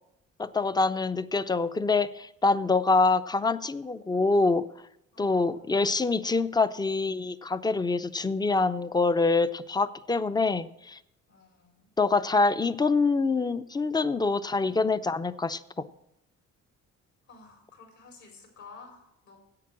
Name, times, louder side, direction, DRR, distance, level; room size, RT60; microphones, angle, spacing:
voice 1, 0.4-4.7 5.2-11.0 12.0-15.6, left 3 dB, 15° left, 13 dB, 0.5 m, -25 dB
voice 2, 5.1-5.8 11.3-11.9 17.3-19.4, left 4 dB, 70° left, 1 dB, 4.7 m, -52 dB
10.5 x 8.3 x 6.1 m, 0.84 s
cardioid pair, 90°, 30 cm